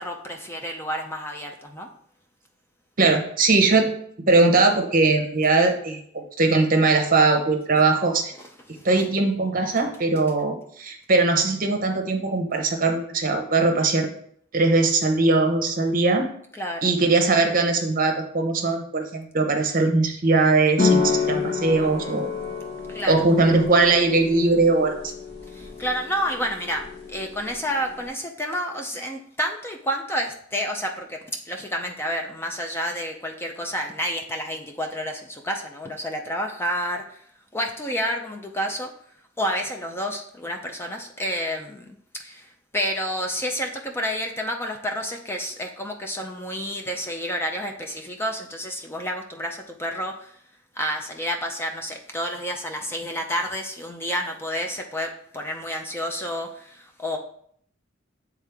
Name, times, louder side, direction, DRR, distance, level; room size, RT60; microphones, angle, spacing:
voice 1, 0.0-1.9 8.4-8.5 8.8-8.9 16.6-16.8 22.9-23.1 25.5-31.2 31.5-37.2 37.5-38.9 39.4-50.3 50.7-57.2, equal, 10° left, 3 dB, 0.5 m, -30 dB
voice 2, 3.0-3.9 4.3-8.3 8.8-14.1 14.5-16.3 16.8-22.3 23.1-25.0, right 3 dB, 45° right, 4 dB, 0.9 m, -20 dB
sound 1, 20.8-28.1, left 5 dB, 55° left, 1.3 m, -28 dB
8.2 x 3.6 x 3.5 m, 0.64 s
head